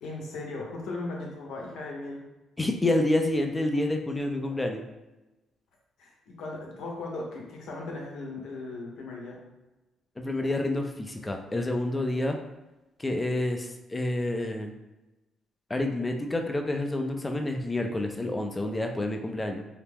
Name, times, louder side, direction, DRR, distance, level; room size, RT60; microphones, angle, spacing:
voice 1, 0.0-2.2 6.0-9.4, left 2 dB, 80° left, -1 dB, 0.7 m, -37 dB
voice 2, 2.6-4.8 10.2-12.4 13.0-14.7 15.7-19.7, left 1 dB, 20° left, 4 dB, 0.4 m, -28 dB
2.8 x 2.2 x 3.4 m, 1.0 s
cardioid pair, 90°, 0 cm